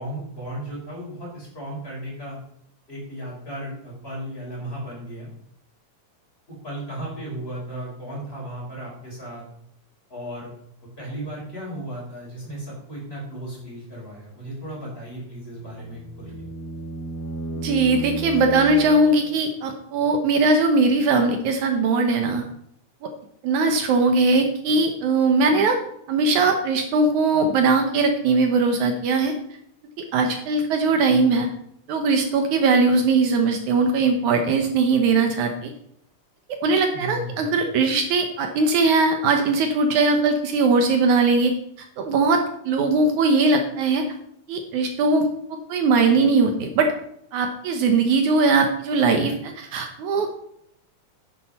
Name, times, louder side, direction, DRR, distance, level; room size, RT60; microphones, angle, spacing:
voice 1, 0.0-2.4 2.9-5.3 6.6-9.4 10.1-10.5 11.0-16.3 36.9-37.5, right 1 dB, 15° left, -4 dB, 5.2 m, -35 dB
sound 1, 15.6-19.5, right 1 dB, 50° left, 1.8 m, -33 dB
voice 2, 17.6-22.4 23.0-23.1 23.4-25.8 26.1-29.3 30.0-31.5 31.9-35.7 36.6-41.5 42.0-44.1 44.5-45.3 45.7-46.9 47.3-50.3, right 3 dB, 75° right, 5 dB, 2.4 m, -20 dB
10.5 x 9.9 x 4.3 m, 0.72 s
omnidirectional pair, 3.6 m